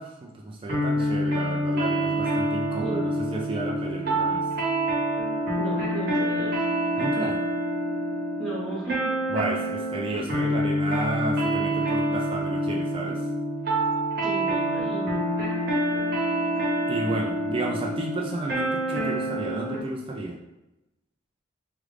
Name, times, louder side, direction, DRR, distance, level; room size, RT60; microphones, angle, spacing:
voice 1, 0.0-4.4 7.0-7.4 9.3-13.3 16.9-20.4, right 2 dB, 25° right, -1 dB, 0.4 m, -32 dB
sound 1, 0.7-19.8, right 1 dB, 50° right, 0.9 m, -27 dB
voice 2, 5.6-6.6 8.4-9.1 14.2-15.2, right 3 dB, ahead, -10 dB, 0.9 m, -34 dB
3.2 x 2.4 x 3.2 m, 0.94 s
head